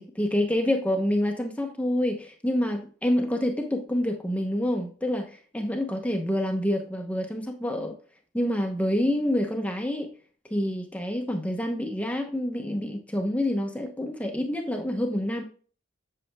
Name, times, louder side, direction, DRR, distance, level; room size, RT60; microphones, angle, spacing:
voice 1, 0.0-8.0 8.3-10.1 10.5-15.4, left 1 dB, 5° left, 0.9 m, -27 dB
8.2 x 7.7 x 2.3 m
head